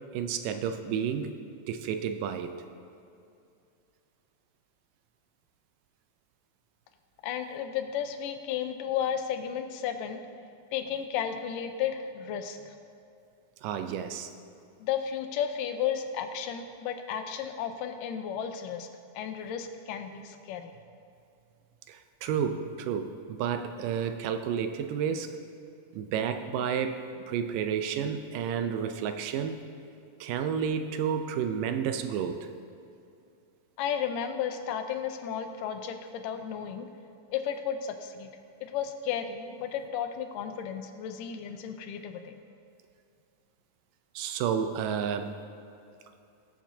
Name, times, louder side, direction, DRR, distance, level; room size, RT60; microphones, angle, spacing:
voice 1, 0.1-1.3 1.7-2.5 13.6-14.3 21.9-25.4 25.9-27.0 27.3-29.6 30.2-32.4 44.2-45.4, right 7 dB, 85° right, 8 dB, 2.3 m, -31 dB
voice 2, 7.2-10.2 10.7-12.7 14.8-18.9 19.2-20.8 33.8-36.9 37.3-38.3 38.6-42.4, left 8 dB, 85° left, 7 dB, 2.3 m, -33 dB
20.0 x 7.3 x 2.7 m, 2.6 s
omnidirectional pair, 3.8 m